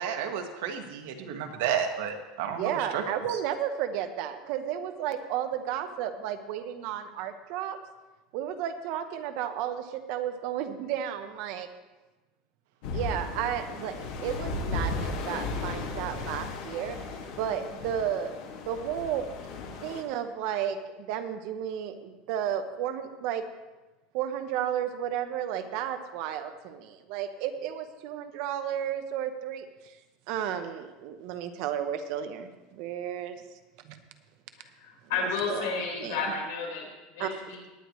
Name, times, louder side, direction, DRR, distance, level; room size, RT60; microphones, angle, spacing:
voice 1, 0.0-3.0 3.3-3.4, right 8 dB, 70° right, 4 dB, 1.6 m, -32 dB
voice 2, 2.5-7.8 8.3-11.7 12.9-17.0 17.4-18.3 18.7-19.3 19.8-23.4 24.1-29.9 30.3-33.4 33.8-34.0 35.5-35.7 36.0-36.2 37.2-37.3, right 9 dB, 50° right, 8 dB, 1.0 m, -33 dB
sound 1, 12.8-20.0, left 3 dB, 60° left, 2.0 m, -35 dB
voice 3, 34.6-37.7, left 4 dB, 90° left, -1 dB, 4.6 m, -32 dB
18.5 x 9.9 x 3.2 m, 1.1 s
supercardioid pair, 175°, 0 cm